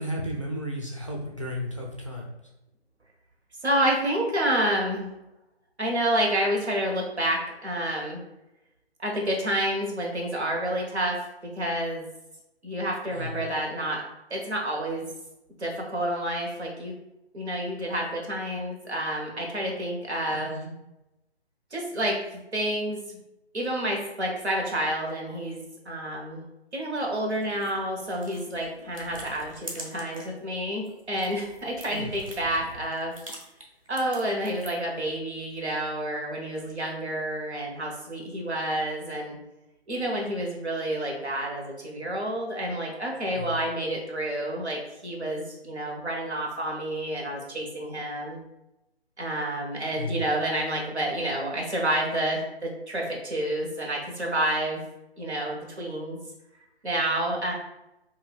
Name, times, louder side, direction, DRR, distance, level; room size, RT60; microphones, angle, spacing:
voice 1, 0.0-2.3 13.1-13.4 20.3-20.7 31.9-32.1 43.3-43.6 49.9-50.2, equal, 30° left, -1 dB, 0.4 m, -33 dB
voice 2, 3.6-5.1 5.8-8.2 9.0-12.0 12.6-14.0 14.3-15.1 15.6-16.9 17.3-20.5 21.7-23.0 23.5-26.4 26.7-33.1 33.9-39.4 39.9-48.4 49.2-54.8 55.2-56.2 56.8-57.5, right 1 dB, 85° right, -1 dB, 1.2 m, -29 dB
sound 1, 27.3-30.4 30.7-34.9, right 1 dB, 35° right, 0.4 m, -45 dB
2.6 x 2.5 x 3.4 m, 0.92 s
figure-of-eight pair, 150°, 32 cm